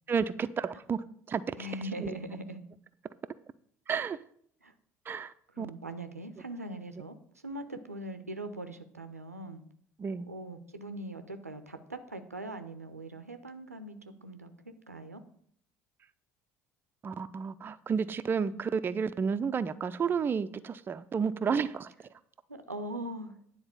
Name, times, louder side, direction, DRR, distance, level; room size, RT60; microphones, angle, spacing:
voice 1, 0.1-1.7 2.0-2.1 3.9-4.2 5.1-5.7 10.0-10.3 17.0-21.9, right 6 dB, 25° right, 0.5 m, -31 dB
voice 2, 1.6-2.6 4.6-4.7 5.6-7.1 7.4-9.6 10.3-15.2 22.5-23.4, right 1 dB, 90° right, 0.6 m, -41 dB
9.7 x 4.0 x 6.9 m
figure-of-eight pair, 60°, 8 cm